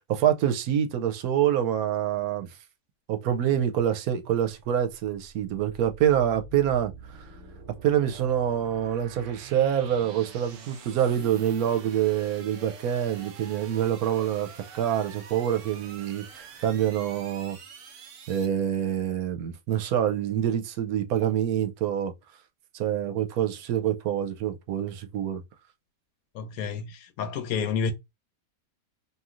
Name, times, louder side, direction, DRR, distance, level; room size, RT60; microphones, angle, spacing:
voice 1, 0.1-2.6 3.1-7.2 7.8-14.5 14.7-17.6 18.3-22.1 22.7-25.4, right 10 dB, 85° right, 1.1 m, -26 dB
sound 1, 5.0-18.5, right 4 dB, 65° right, 0.9 m, -46 dB
voice 2, 26.3-27.9, left 6 dB, 80° left, 1.1 m, -30 dB
3.1 x 2.5 x 2.4 m
omnidirectional pair, 1.5 m